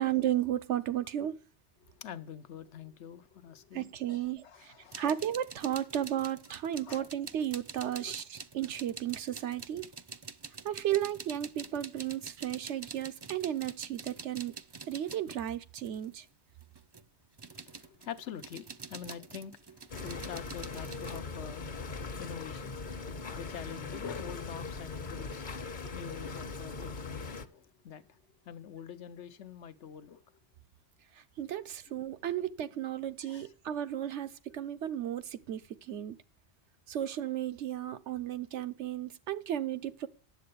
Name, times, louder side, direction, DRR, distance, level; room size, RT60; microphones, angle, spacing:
voice 1, 0.0-1.4 3.7-9.9 10.6-14.5 14.9-16.2 31.4-35.6 35.9-36.2 36.9-40.1, right 11 dB, 90° right, 1.1 m, -34 dB
voice 2, 1.8-5.1 6.8-7.1 8.0-8.2 17.4-28.2 28.4-30.2 33.2-33.5, left 8 dB, 85° left, 1.2 m, -46 dB
sound 1, 4.9-16.1 16.6-21.2, right 5 dB, 35° right, 0.4 m, -46 dB
sound 2, 19.9-27.5, left 4 dB, 45° left, 1.0 m, -40 dB
10.0 x 7.7 x 6.8 m
omnidirectional pair, 1.2 m